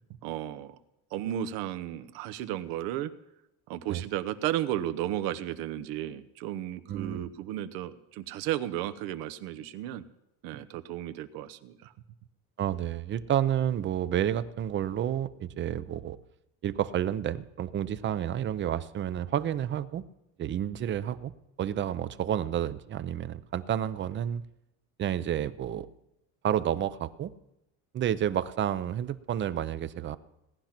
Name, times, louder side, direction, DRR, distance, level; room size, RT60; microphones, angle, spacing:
voice 1, 0.2-0.8 1.1-3.1 3.7-10.0 10.4-11.9, right 12 dB, 75° right, 13 dB, 1.0 m, -34 dB
voice 2, 6.9-7.2 12.6-16.2 16.6-20.0 20.4-21.3 21.6-24.4 25.0-25.9 26.4-27.3 27.9-30.2, right 10 dB, 30° right, 15 dB, 0.6 m, -30 dB
17.5 x 10.5 x 5.9 m, 0.88 s
cardioid pair, 135°, 36 cm